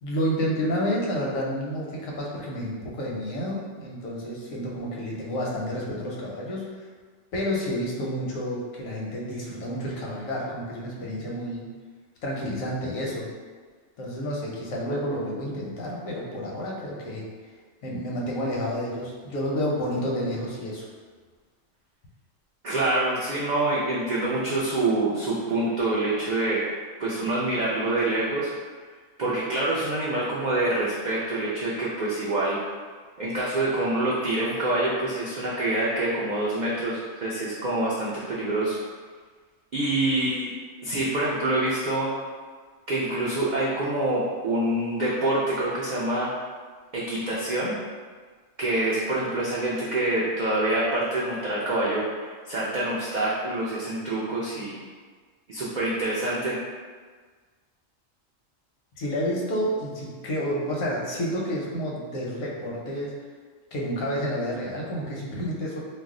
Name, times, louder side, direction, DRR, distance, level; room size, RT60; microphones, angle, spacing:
voice 1, 0.0-6.9 7.3-11.7 12.2-13.3 14.0-17.3 17.8-20.9 58.9-63.1 63.7-65.8, equal, 90° left, -3 dB, 1.1 m, -30 dB
voice 2, 22.6-26.6 27.0-28.5 29.2-32.6 33.2-38.8 39.7-42.2 42.9-46.3 46.9-47.7 48.6-54.8 55.5-56.6, right 2 dB, 85° right, -6 dB, 0.4 m, -26 dB
2.6 x 2.0 x 3.6 m, 1.5 s
omnidirectional pair, 1.4 m